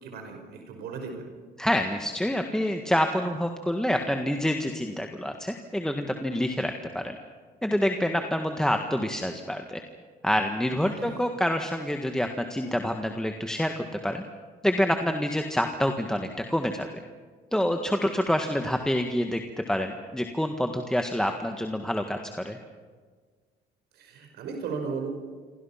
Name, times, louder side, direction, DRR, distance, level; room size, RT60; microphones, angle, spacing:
voice 1, 0.0-1.3 10.8-11.2 23.9-25.1, right 5 dB, 75° right, 4 dB, 5.2 m, -36 dB
voice 2, 1.6-7.1 7.6-9.8 10.2-13.7 14.0-14.2 14.6-16.9 17.5-19.4 19.7-22.2 22.4-22.6, equal, 5° left, 4 dB, 1.6 m, -27 dB
28.0 x 24.0 x 5.8 m, 1.5 s
cardioid pair, 110°, 17 cm